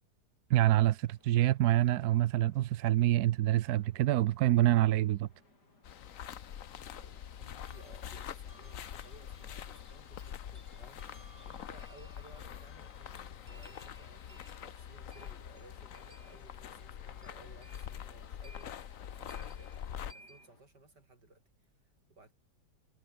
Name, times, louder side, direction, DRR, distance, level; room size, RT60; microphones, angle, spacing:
voice 1, 0.5-5.3, right 14 dB, 70° right, 1.1 m, -26 dB
sound 1, 0.7-20.6, left 3 dB, 80° left, 5.6 m, -67 dB
sound 2, 5.8-20.1, left 9 dB, 55° left, 1.3 m, -45 dB
voice 2, 6.8-22.3, right 2 dB, 85° right, 6.2 m, -60 dB
sound 3, 7.6-20.5, right 2 dB, 35° right, 5.1 m, -61 dB
omnidirectional pair, 1.8 m